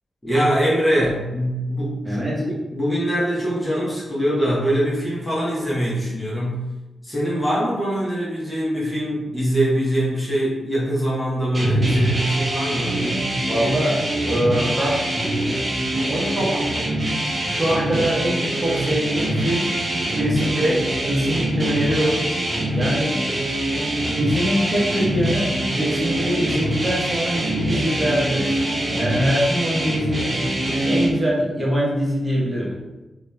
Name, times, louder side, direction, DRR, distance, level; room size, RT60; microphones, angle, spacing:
voice 1, 0.2-6.6 7.0-13.0, right 1 dB, 15° left, -7 dB, 0.8 m, -23 dB
voice 2, 2.0-2.4 13.5-15.0 16.1-16.7 17.4-19.7 20.1-22.2 22.7-23.2 24.2-28.6 28.9-30.5 30.9-32.8, equal, 20° right, -6 dB, 0.9 m, -23 dB
sound 1, 11.5-31.1, right 1 dB, 40° right, 0.6 m, -24 dB
2.6 x 2.2 x 2.2 m, 1.1 s
cardioid pair, 55°, 0 cm